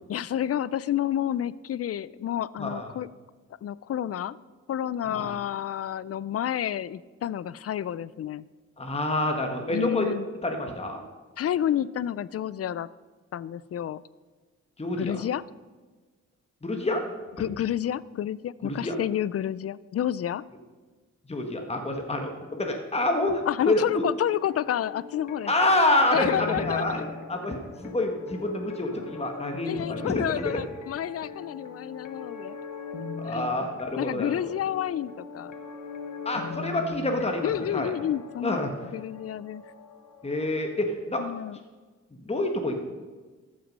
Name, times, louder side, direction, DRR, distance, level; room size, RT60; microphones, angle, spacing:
voice 1, 0.1-3.1 3.6-4.4 4.7-8.4 9.7-10.3 11.4-12.9 13.3-14.0 15.0-15.4 17.4-20.4 23.5-25.5 26.1-27.0 29.6-32.6 33.3-33.5 34.0-35.5 36.3-36.9 37.4-39.6 41.2-41.6, left 10 dB, 55° left, 20 dB, 0.4 m, -30 dB
voice 2, 8.8-10.1 10.4-11.0 14.8-15.1 16.6-17.0 18.6-19.0 21.3-24.0 25.5-27.0 27.3-27.6 27.8-30.6 33.2-34.4 36.2-37.9 38.4-38.7 40.2-41.2 42.2-42.8, left 1 dB, 20° left, 3 dB, 1.4 m, -27 dB
sound 1, 24.3-40.7, left 4 dB, 85° left, 1.3 m, -40 dB
14.0 x 6.3 x 5.4 m, 1.3 s
cardioid pair, 75°, 30 cm